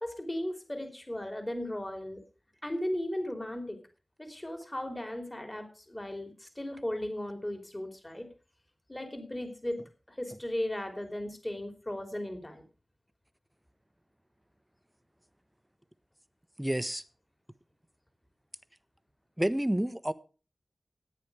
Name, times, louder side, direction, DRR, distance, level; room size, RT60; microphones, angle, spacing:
voice 1, 0.0-2.2 2.6-3.8 4.2-8.3 8.9-9.8 10.1-12.6, left 1 dB, 20° left, 3.2 m, -36 dB
voice 2, 16.6-17.0 19.4-20.1, right 1 dB, 10° right, 1.1 m, -29 dB
14.0 x 9.6 x 4.9 m
wide cardioid pair, 55°, 0 cm